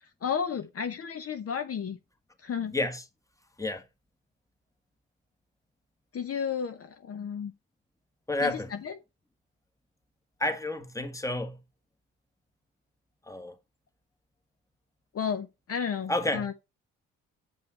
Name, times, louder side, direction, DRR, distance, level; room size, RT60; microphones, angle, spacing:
voice 1, 0.2-2.0 2.4-2.7 6.1-7.5 8.4-8.9 15.1-16.5, left 7 dB, 40° left, 0.8 m, -32 dB
voice 2, 2.7-3.0 3.6-3.8 8.3-8.7 10.4-11.6 13.3-13.6 16.1-16.5, left 2 dB, 10° left, 1.4 m, -30 dB
7.3 x 5.4 x 4.2 m
hypercardioid pair, 50°, 36 cm